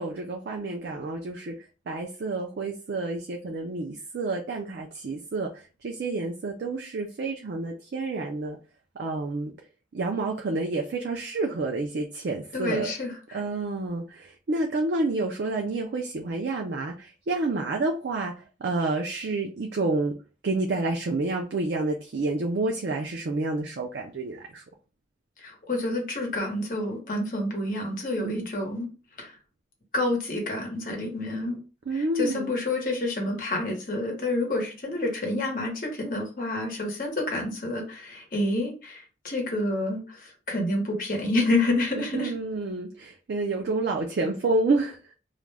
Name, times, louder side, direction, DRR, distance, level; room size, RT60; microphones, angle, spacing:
voice 1, 0.0-8.6 9.0-9.5 9.9-12.9 13.3-18.3 18.6-20.1 20.4-24.6 28.2-28.4 31.9-32.6 42.0-45.1, right 3 dB, 70° right, 0.4 m, -29 dB
voice 2, 12.5-13.4 25.4-28.9 29.2-29.4 29.9-31.6 31.9-42.3, left 2 dB, 50° left, 0.9 m, -28 dB
2.4 x 2.1 x 3.2 m
head